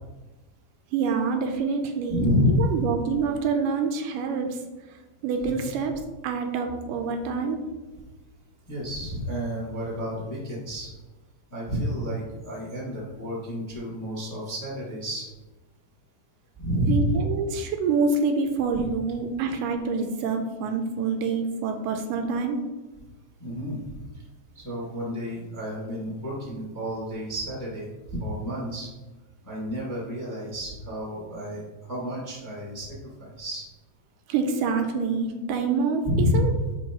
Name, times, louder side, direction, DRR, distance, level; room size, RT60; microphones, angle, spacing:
voice 1, 0.9-2.2 2.6-4.6 5.2-5.9 6.2-7.6 16.9-22.6 34.3-36.7, right 5 dB, 85° right, 5 dB, 2.1 m, -26 dB
voice 2, 2.1-2.7 5.4-5.7 8.7-10.9 11.5-15.3 16.6-17.2 23.4-24.0 24.5-27.9 28.2-28.9 29.4-31.6 31.9-33.7 36.0-36.5, left 1 dB, 10° left, -6 dB, 1.0 m, -29 dB
9.1 x 4.5 x 3.0 m, 1.2 s
omnidirectional pair, 3.9 m